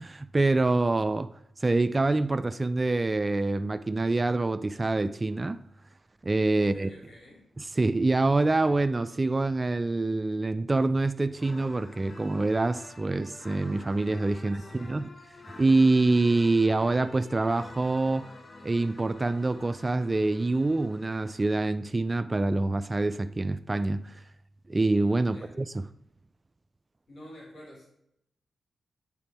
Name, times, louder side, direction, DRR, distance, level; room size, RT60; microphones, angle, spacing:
voice 1, 0.0-1.3 1.6-5.6 6.2-6.9 7.6-15.1 15.6-18.3 18.6-24.2 24.7-25.8, right 2 dB, 30° right, 0.3 m, -26 dB
voice 2, 6.6-7.4 14.4-15.0 25.2-25.5 27.1-27.9, left 1 dB, 75° left, 2.7 m, -50 dB
sound 1, 11.3-21.8, left 2 dB, 45° left, 0.8 m, -49 dB
8.7 x 3.6 x 4.2 m
cardioid pair, 50°, 0 cm